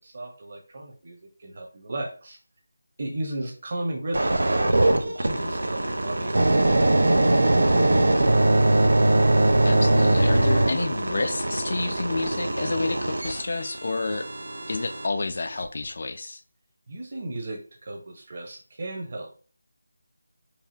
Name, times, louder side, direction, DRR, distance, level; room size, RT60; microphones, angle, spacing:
voice 1, 0.0-2.4 3.0-8.1 16.9-19.3, right 1 dB, 40° right, 1 dB, 1.2 m, -35 dB
sound 1, 4.1-15.1 15.6-15.8, right 2 dB, 75° right, 0.7 m, -22 dB
voice 2, 9.6-14.3 14.7-16.4, left 3 dB, 45° left, 8 dB, 0.4 m, -29 dB
4.7 x 2.6 x 2.8 m, 0.40 s
figure-of-eight pair, 175°, 0 cm